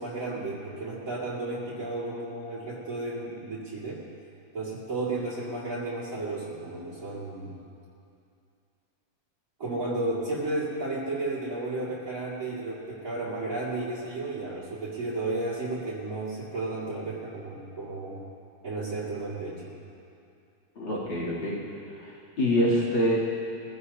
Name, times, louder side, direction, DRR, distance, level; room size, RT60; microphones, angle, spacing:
voice 1, 0.0-4.1 4.5-7.6 9.6-18.2 18.6-19.8, right 2 dB, 40° right, -10 dB, 2.6 m, -33 dB
voice 2, 20.8-21.6 22.0-22.1 22.4-23.2, equal, 65° left, -7 dB, 3.8 m, -25 dB
22.5 x 16.5 x 2.8 m, 2.6 s
omnidirectional pair, 2.2 m